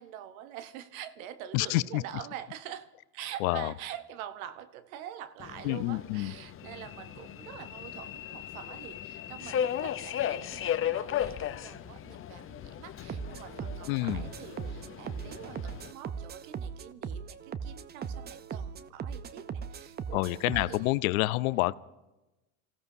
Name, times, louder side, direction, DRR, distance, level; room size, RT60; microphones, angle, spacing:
voice 1, 0.0-21.0, right 11 dB, 75° right, 12 dB, 1.0 m, -45 dB
voice 2, 1.5-2.0 3.4-3.7 5.6-6.3 13.9-14.3 20.1-21.7, left 19 dB, 80° left, 19 dB, 0.5 m, -28 dB
Subway metro underground, 5.4-15.9, left 10 dB, 30° left, 0.6 m, -36 dB
sound 1, 13.1-20.9, right 6 dB, 25° right, 0.6 m, -39 dB
29.0 x 16.0 x 2.7 m, 1.0 s
supercardioid pair, 95°, 42 cm